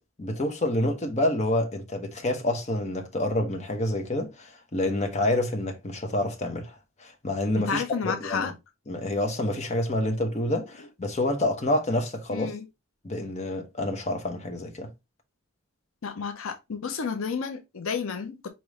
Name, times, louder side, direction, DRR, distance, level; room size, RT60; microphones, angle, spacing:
voice 1, 0.2-6.7 7.0-8.5 8.9-12.5 13.0-14.9, left 1 dB, 35° left, 1.0 m, -28 dB
voice 2, 7.6-8.5 12.3-12.6 16.0-18.5, left 6 dB, 75° left, 0.6 m, -31 dB
5.0 x 3.0 x 3.1 m
head